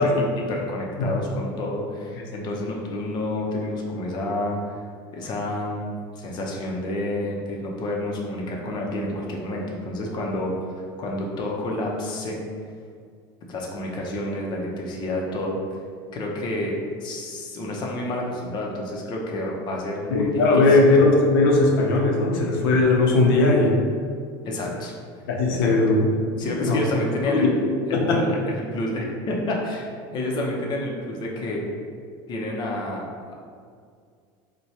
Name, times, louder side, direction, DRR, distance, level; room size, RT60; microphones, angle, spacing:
voice 1, 0.0-4.8 5.1-10.5 11.0-12.4 13.5-15.6 16.1-20.3 20.6-20.9 24.4-24.9 25.5-25.7 26.4-27.5 27.9-31.6 32.3-33.0, left 1 dB, 40° left, -1 dB, 0.6 m, -29 dB
voice 2, 20.1-23.7 25.3-26.1 26.5-26.8 27.3-27.5 27.9-28.2, left 2 dB, 85° left, 0 dB, 0.6 m, -18 dB
4.4 x 2.2 x 2.8 m, 2.1 s
supercardioid pair, 125°, 12 cm